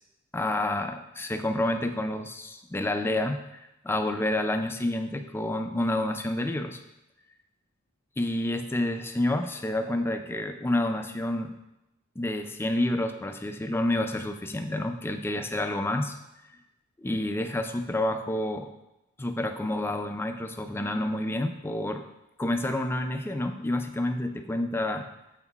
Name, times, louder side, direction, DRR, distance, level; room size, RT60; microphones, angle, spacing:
voice 1, 0.3-6.8 8.2-11.5 12.2-16.2 17.0-18.7 19.2-22.0 22.4-25.1, left 1 dB, 10° left, 7 dB, 0.3 m, -29 dB
7.8 x 5.4 x 2.4 m, 0.92 s
head